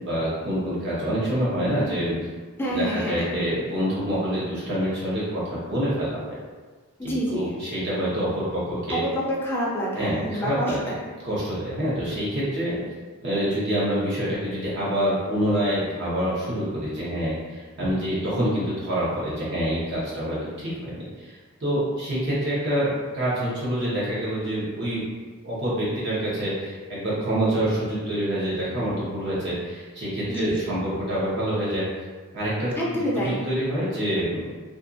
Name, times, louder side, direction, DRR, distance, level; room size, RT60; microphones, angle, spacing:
voice 1, 0.0-2.1 2.7-6.4 7.0-9.0 10.0-10.9 11.2-12.8 13.2-21.3 21.6-25.1 25.4-31.9 32.3-32.8 33.1-34.5, equal, 55° right, -9 dB, 0.9 m, -26 dB
voice 2, 2.6-3.3 7.0-7.5 8.9-10.8 30.3-30.7 32.8-33.4, equal, 10° left, -5 dB, 0.5 m, -27 dB
2.5 x 2.4 x 2.5 m, 1.4 s
head